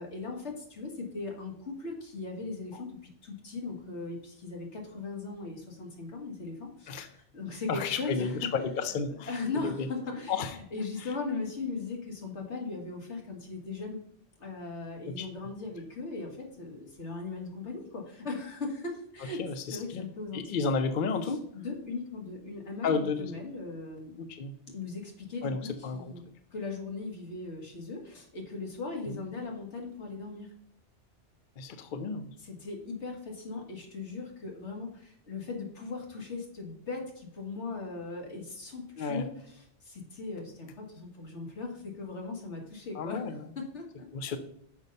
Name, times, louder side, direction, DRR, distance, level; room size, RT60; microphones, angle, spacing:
voice 1, 0.0-8.5 9.3-14.0 14.4-19.4 19.7-20.5 21.2-24.1 24.7-26.2 26.5-30.5 32.4-43.2 43.6-44.1, left 3 dB, 70° left, 1 dB, 1.9 m, -38 dB
voice 2, 7.7-9.3 9.6-9.9 10.3-10.6 11.0-11.1 15.1-15.3 19.4-20.0 20.3-21.4 22.8-23.3 24.2-24.5 25.4-26.0 29.1-29.2 31.6-32.3 39.0-39.2 42.9-43.5 44.1-44.4, left 5 dB, 55° left, 8 dB, 0.7 m, -32 dB
6.3 x 5.4 x 5.3 m, 0.68 s
omnidirectional pair, 1.2 m